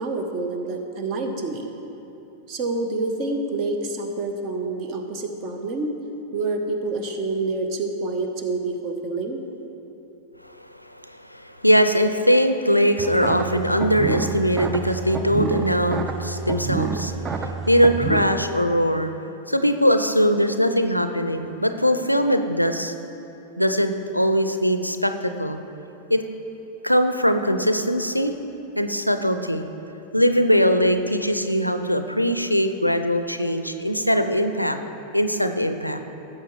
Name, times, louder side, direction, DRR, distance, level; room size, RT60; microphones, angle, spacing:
voice 1, 0.0-1.7 2.5-5.9 6.3-9.4, right 3 dB, 40° right, 5 dB, 1.1 m, -27 dB
voice 2, 10.4-19.1 19.5-22.9 23.6-25.6 26.1-26.2 26.8-28.3 28.8-29.6 30.1-34.8 35.1-36.0, equal, 90° left, 8 dB, 0.5 m, -21 dB
sound 1, 13.0-18.2, right 4 dB, 25° right, 0.6 m, -28 dB
16.5 x 7.3 x 3.3 m, 3.0 s
figure-of-eight pair, 90°, 0 cm